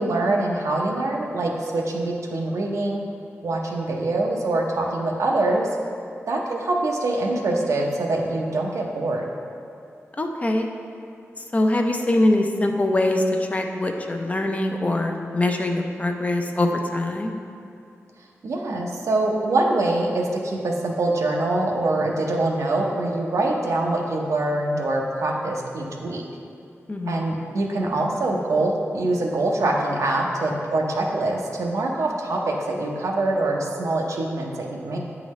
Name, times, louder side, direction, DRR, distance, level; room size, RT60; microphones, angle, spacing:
voice 1, 0.0-3.0 3.4-5.7 6.3-9.2 18.4-26.2 27.1-35.0, right 2 dB, 75° right, 0 dB, 0.7 m, -24 dB
voice 2, 10.2-10.7 11.4-17.3 26.9-27.2, left 1 dB, 30° left, 3 dB, 0.5 m, -23 dB
8.2 x 3.8 x 3.1 m, 2.5 s
wide cardioid pair, 90°, 5 cm